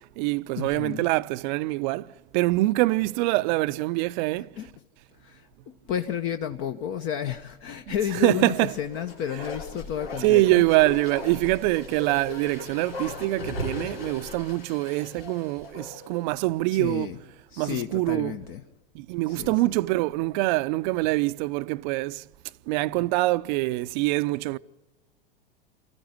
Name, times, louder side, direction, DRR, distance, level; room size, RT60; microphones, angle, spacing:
voice 1, 0.0-4.5 8.2-8.7 10.2-17.1 17.6-18.4 18.9-22.2 22.7-24.6, right 20 dB, 50° right, 0.6 m, -24 dB
voice 2, 0.6-1.0 4.4-4.7 5.2-10.6 16.7-17.2 17.5-18.6 19.3-19.8, left 9 dB, 45° left, 1.2 m, -32 dB
Bark, 8.7-16.3 16.6-16.7, left 2 dB, 85° left, 3.6 m, -38 dB
28.0 x 14.0 x 9.5 m
hypercardioid pair, 110°, 29 cm